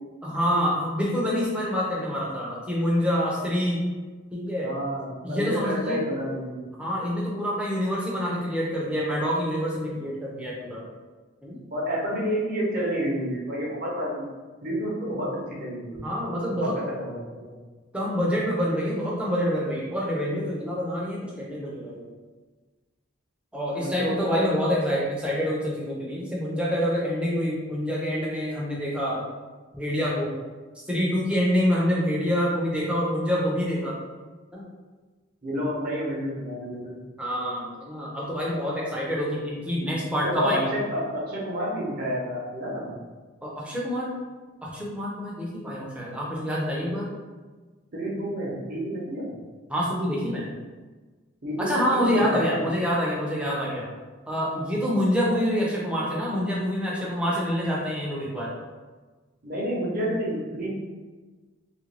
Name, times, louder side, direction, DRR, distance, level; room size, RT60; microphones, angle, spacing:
voice 1, 0.2-3.9 4.3-4.7 5.2-6.0 6.8-10.8 11.4-11.6 16.0-16.7 17.9-22.0 23.5-29.2 29.7-30.3 30.9-34.0 34.5-34.6 37.2-40.7 43.4-44.1 44.6-47.1 49.7-50.5 51.6-53.9 54.3-58.5, equal, 5° right, -5 dB, 0.6 m, -26 dB
voice 2, 4.6-6.7 11.7-14.2 14.6-16.1 16.5-17.4 23.7-24.5 35.4-37.0 40.2-43.0 47.9-49.4 51.4-52.6 59.4-60.7, equal, 45° right, -5 dB, 0.8 m, -30 dB
3.2 x 2.5 x 3.2 m, 1.3 s
head